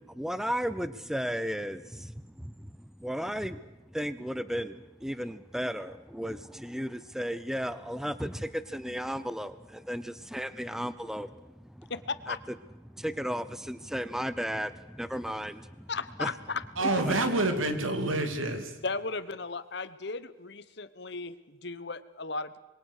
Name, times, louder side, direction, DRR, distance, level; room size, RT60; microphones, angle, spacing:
voice 1, 0.1-2.7 3.0-3.6 3.9-11.4 11.8-11.9 13.0-15.9 16.2-16.3 17.1-17.2, equal, ahead, 14 dB, 0.7 m, -34 dB
voice 2, 11.9-12.4 15.3-15.4 15.9-17.0 18.8-22.6, left 3 dB, 55° left, 14 dB, 1.1 m, -36 dB
voice 3, 16.8-18.8, right 2 dB, 85° right, 7 dB, 3.0 m, -27 dB
26.5 x 22.0 x 6.6 m, 1.1 s
head